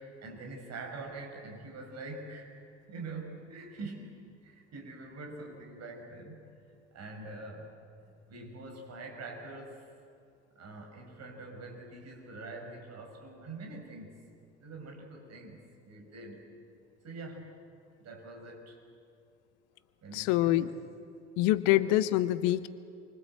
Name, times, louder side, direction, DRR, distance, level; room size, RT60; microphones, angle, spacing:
voice 1, 0.0-2.6 2.9-6.4 6.9-7.7 8.0-9.8 10.5-14.1 14.6-16.4 17.0-17.6 18.0-18.8 20.0-20.8 21.6-21.9, right 2 dB, 45° right, 2 dB, 6.0 m, -44 dB
voice 2, 20.1-20.7 21.4-22.7, left 15 dB, 55° left, 15 dB, 0.9 m, -25 dB
28.5 x 24.5 x 7.8 m, 2.5 s
figure-of-eight pair, 60°, 36 cm